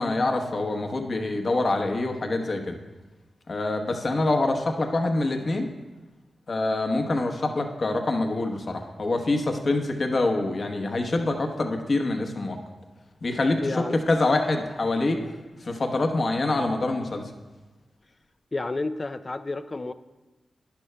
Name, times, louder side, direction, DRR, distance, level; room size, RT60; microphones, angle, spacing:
voice 1, 0.0-2.8 3.5-5.7 6.5-12.6 13.2-17.2, left 2 dB, 55° left, 4 dB, 1.0 m, -25 dB
voice 2, 13.6-14.0 18.5-19.9, left 2 dB, 35° left, 11 dB, 0.4 m, -30 dB
11.5 x 10.5 x 2.2 m, 1.1 s
cardioid pair, 55°, 0 cm